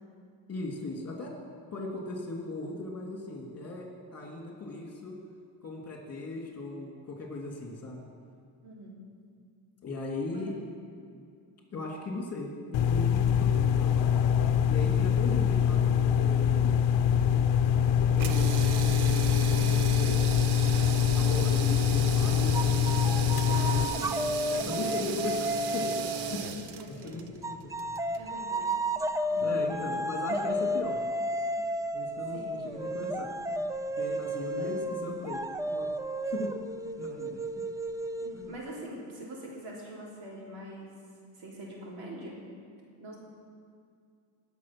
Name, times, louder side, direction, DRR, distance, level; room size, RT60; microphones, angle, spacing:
voice 1, 0.5-1.3 1.7-5.2 5.6-8.0 9.8-10.5 11.7-14.2 14.7-16.8 18.0-20.2 21.1-22.8 23.4-23.9 24.5-27.9 29.4-31.0 31.6-31.7 31.9-33.6 34.0-35.4 35.7-35.9 36.3-36.5 37.0-37.7 38.3-38.5, left 2 dB, 30° left, -1 dB, 3.0 m, -38 dB
voice 2, 8.6-9.0 10.3-10.6 15.0-15.2 23.5-24.1 24.5-25.3 25.6-25.9 26.7-27.2 28.1-28.7 29.3-29.6 32.3-32.6 34.5-35.0 38.2-40.9 41.3-42.4 43.0-43.2, right 1 dB, 75° right, -4 dB, 4.1 m, -43 dB
sound 1, 12.7-23.8, left 8 dB, 65° left, 0.8 m, -24 dB
sound 2, 18.1-28.3, right 8 dB, 55° right, 0.9 m, -36 dB
sound 3, 22.5-26.4 27.4-38.7, equal, 10° right, 0.4 m, -32 dB
19.5 x 6.7 x 6.2 m, 2.3 s
cardioid pair, 115°, 47 cm